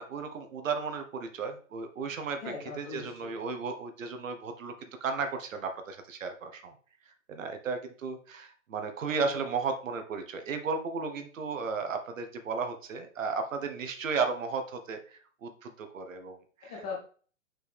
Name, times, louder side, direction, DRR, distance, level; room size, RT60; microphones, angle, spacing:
voice 1, 0.0-2.4 2.8-6.7 7.3-16.7, right 5 dB, 75° right, 7 dB, 1.4 m, -34 dB
voice 2, 2.4-3.4 16.7-17.0, left 5 dB, 5° left, -2 dB, 0.4 m, -39 dB
5.9 x 4.7 x 3.5 m, 0.42 s
hypercardioid pair, 150°, 39 cm